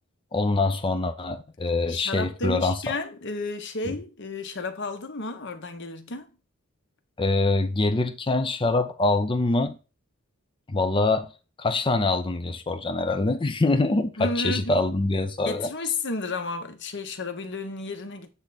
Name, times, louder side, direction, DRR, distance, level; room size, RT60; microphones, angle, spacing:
voice 1, 0.3-2.8 3.9-4.0 7.2-9.8 10.7-11.3 11.6-15.7, left 2 dB, 25° left, 0.5 m, -24 dB
voice 2, 1.9-6.3 14.2-14.8 15.4-18.3, left 3 dB, 55° left, 1.2 m, -32 dB
8.1 x 3.5 x 4.0 m
head